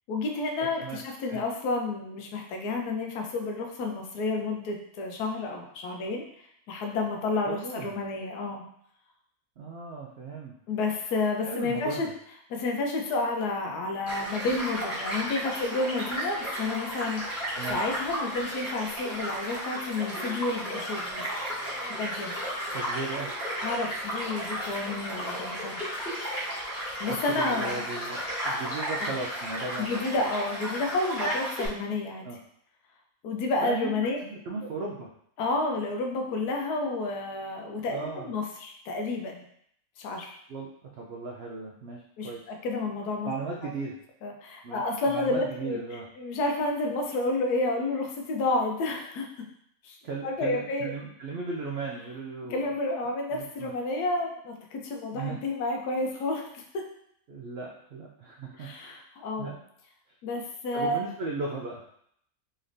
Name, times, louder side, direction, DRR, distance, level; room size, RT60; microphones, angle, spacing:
voice 1, 0.1-6.3 6.7-8.6 10.7-12.1 12.5-21.2 22.0-22.3 23.6-25.8 27.0-27.9 29.0-29.1 29.8-32.3 33.2-34.2 34.5-34.7 35.4-39.4 40.0-40.3 42.2-43.3 43.6-43.7 44.2-49.3 49.8-50.0 50.2-50.9 52.5-56.8 58.6-59.5 60.2-61.0, left 2 dB, 85° left, 2 dB, 1.2 m, -30 dB
voice 2, 7.5-7.9 9.6-10.6 11.5-12.1 17.5-17.8 22.7-23.3 27.1-30.0 32.2-32.4 33.6-35.1 37.9-38.3 40.5-40.7 41.0-42.4 43.2-44.0 44.6-46.1 50.0-52.7 53.3-53.7 55.1-55.4 57.3-59.0 59.4-59.6 60.7-61.8, right 3 dB, 80° right, -2 dB, 0.5 m, -36 dB
Child speech kid speaking / Stream / Car passing by, 14.1-31.7, equal, 35° left, 1.6 m, -34 dB
4.0 x 3.2 x 2.6 m, 0.69 s
omnidirectional pair, 1.6 m